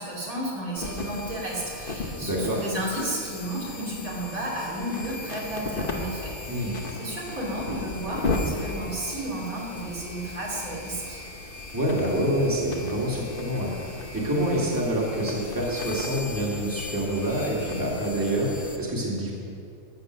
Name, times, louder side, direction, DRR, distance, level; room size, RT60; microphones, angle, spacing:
voice 1, 0.0-11.2, right 1 dB, 85° right, -4 dB, 3.3 m, -33 dB
sound 1, 0.8-18.8, left 3 dB, 40° left, 1.2 m, -36 dB
voice 2, 2.2-2.6 6.5-6.7 11.7-13.7 14.1-19.3, right 1 dB, 15° right, -4 dB, 2.1 m, -26 dB
13.5 x 7.6 x 6.4 m, 2.5 s
omnidirectional pair, 1.5 m